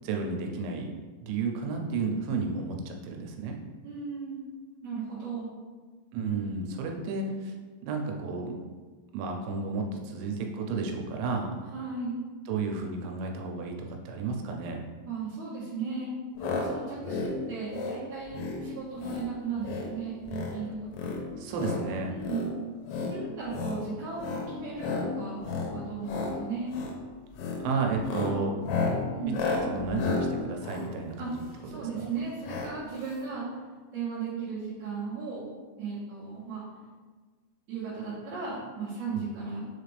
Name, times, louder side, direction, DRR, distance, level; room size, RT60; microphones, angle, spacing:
voice 1, 0.0-0.9 1.2-3.6 6.1-7.5 7.8-8.5 9.1-11.5 12.5-14.8 21.4-22.1 27.6-28.5 29.5-31.4 31.7-32.1, right 4 dB, 90° right, 2 dB, 3.0 m, -32 dB
voice 2, 3.8-4.4 4.8-5.5 11.7-12.2 15.1-16.1 16.4-21.1 22.1-22.5 23.1-26.8 29.1-29.4 31.2-31.3 31.7-33.5 33.9-35.5 35.8-36.6 37.7-39.7, right 5 dB, 65° right, -13 dB, 1.9 m, -36 dB
sound 1, 16.4-16.7 17.0-17.3 17.7-18.0 18.3-18.6 19.0-19.3 19.6-19.9 20.2-20.6 20.9-21.8 22.2-22.5 22.9-23.1 23.5-23.8 24.2-24.5 24.8-25.1 25.4-25.7 26.0-26.3 26.7-27.0 27.3-27.6 28.0-31.7 32.4-32.7 33.0-33.1 33.3-33.4, left 4 dB, 85° left, 3.1 m, -32 dB
6.7 x 2.5 x 3.2 m, 1.4 s
omnidirectional pair, 5.2 m